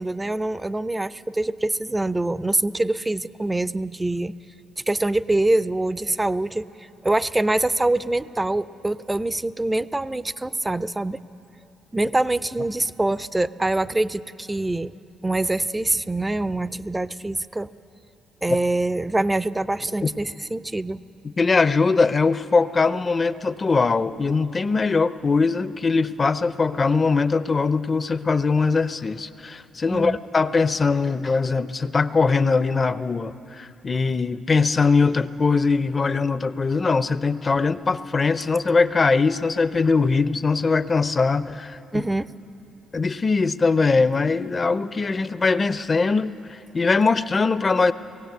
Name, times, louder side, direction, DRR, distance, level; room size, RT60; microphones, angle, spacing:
voice 1, 0.0-4.3 4.9-6.7 7.0-11.2 11.9-14.9 15.2-17.7 18.4-21.0 29.9-30.2 41.9-42.3, right 2 dB, 15° right, 16 dB, 0.4 m, -24 dB
voice 2, 21.4-42.0 42.9-47.9, left 4 dB, 35° left, 14 dB, 0.6 m, -21 dB
19.5 x 17.0 x 8.1 m, 2.7 s
cardioid pair, 90°, 0 cm